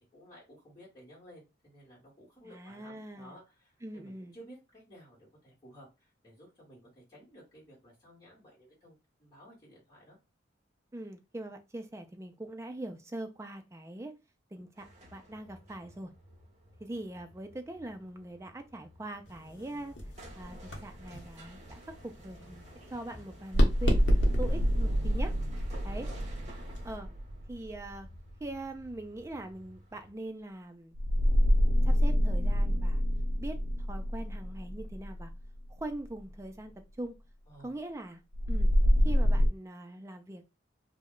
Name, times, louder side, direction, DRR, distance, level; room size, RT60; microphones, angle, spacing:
voice 1, 0.0-10.2 24.6-24.8 25.7-26.2 37.5-37.7, equal, 20° left, -7 dB, 1.2 m, -54 dB
voice 2, 2.4-3.4 3.8-4.4 10.9-14.1 14.5-14.9 15.1-16.1 16.8-22.6 22.9-24.0 24.4-25.3 25.8-26.1 26.8-27.1 27.5-28.1 28.4-30.9 31.8-33.0 33.4-35.3 35.7-37.1 37.6-38.2 38.5-38.7 39.0-40.5, right 1 dB, 15° right, 6 dB, 0.3 m, -42 dB
sound 1, 14.8-30.1, right 1 dB, 35° right, 0.8 m, -54 dB
sound 2, 19.2-27.0, equal, 70° left, 0.8 m, -35 dB
sound 3, 20.6-20.7 23.6-28.3 30.9-36.0 38.3-39.5, equal, 80° right, 0.4 m, -27 dB
2.2 x 2.1 x 3.6 m, 0.27 s
head